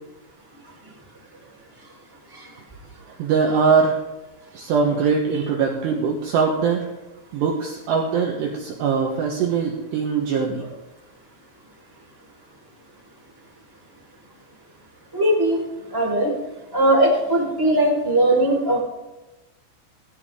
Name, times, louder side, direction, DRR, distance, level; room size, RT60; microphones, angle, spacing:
voice 1, 3.2-4.0 4.5-6.9 7.3-10.6, right 5 dB, 70° right, 0 dB, 2.9 m, -21 dB
voice 2, 15.1-15.6 15.9-16.3 16.7-18.8, right 1 dB, 5° right, -4 dB, 3.8 m, -19 dB
18.0 x 16.5 x 3.7 m, 1.1 s
omnidirectional pair, 5.9 m